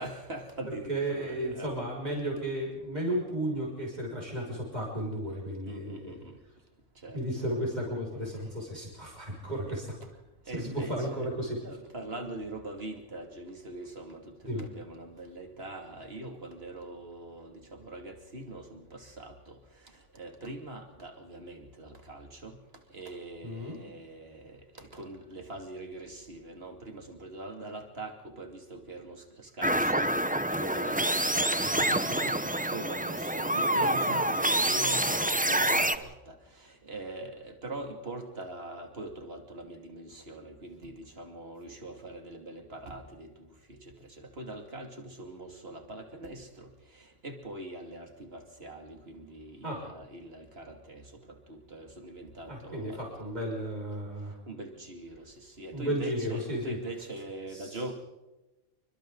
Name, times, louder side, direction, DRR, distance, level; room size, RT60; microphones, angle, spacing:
voice 1, 0.0-1.7 5.6-6.4 7.0-7.2 9.7-9.8 10.5-11.3 11.6-19.6 19.8-22.6 22.9-30.1 30.5-43.3 43.7-53.3 54.5-57.9, right 2 dB, 50° right, 3 dB, 2.9 m, -43 dB
voice 2, 0.9-6.2 7.1-9.9 10.6-11.6 14.4-14.6 23.4-23.8 31.9-32.0 49.6-49.8 52.5-54.3 55.7-56.8 57.5-57.7, right 1 dB, 35° right, -3 dB, 6.2 m, -34 dB
sound 1, 29.6-36.0, right 1 dB, 10° right, 0.7 m, -27 dB
29.0 x 24.5 x 4.0 m, 1.0 s
omnidirectional pair, 1.3 m